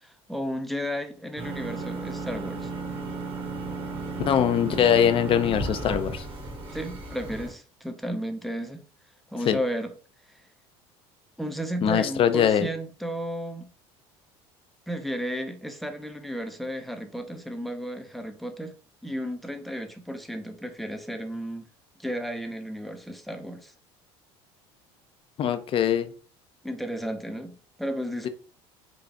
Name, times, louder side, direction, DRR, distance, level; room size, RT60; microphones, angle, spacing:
voice 1, 0.0-2.7 6.7-8.8 9.3-9.9 10.3-10.4 11.4-13.7 14.9-18.7 19.0-21.7 22.0-23.7 26.6-28.3, equal, ahead, 0.6 m, -33 dB
sound 1, 1.4-7.5, right 3 dB, 40° right, 1.6 m, -34 dB
voice 2, 4.3-6.2 9.5-9.6 11.8-12.7 25.4-26.1, left 9 dB, 40° left, 0.5 m, -22 dB
3.9 x 2.4 x 3.3 m
supercardioid pair, 95°, 14 cm